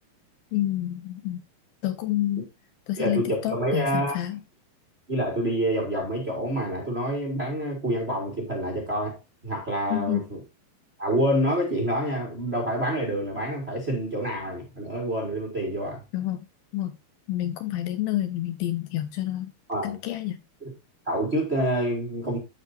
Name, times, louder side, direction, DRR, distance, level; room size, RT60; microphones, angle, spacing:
voice 1, 0.5-1.4 1.8-2.5 2.9-4.4 9.9-10.2 16.1-16.4 16.7-16.9 17.3-19.5 19.8-20.4, left 13 dB, 80° left, 2.2 m, -28 dB
voice 2, 3.0-4.2 5.1-9.2 9.4-10.4 11.0-16.0 19.7-20.0 20.6-20.7 21.0-22.4, right 1 dB, 30° right, 1.2 m, -27 dB
14.0 x 4.8 x 2.7 m
omnidirectional pair, 4.7 m